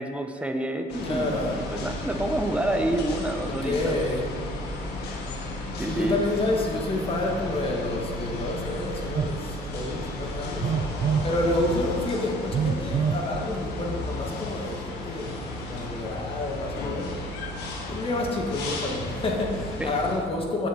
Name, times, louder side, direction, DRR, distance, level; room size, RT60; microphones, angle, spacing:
voice 1, 0.0-4.0 5.8-6.2 19.8-20.0, right 1 dB, 5° right, 5 dB, 0.8 m, -28 dB
sound 1, 0.9-20.2, left 1 dB, 80° left, 1.6 m, -34 dB
voice 2, 1.0-1.6 3.5-4.3 5.9-10.7 11.2-15.4 15.7-17.1 17.8-20.7, left 2 dB, 35° left, 0 dB, 1.6 m, -29 dB
Telephone, 9.2-9.4 10.6-11.3 12.5-13.3, right 7 dB, 35° right, 0.5 m, -25 dB
9.5 x 7.2 x 4.6 m, 2.1 s
cardioid pair, 110°, 17 cm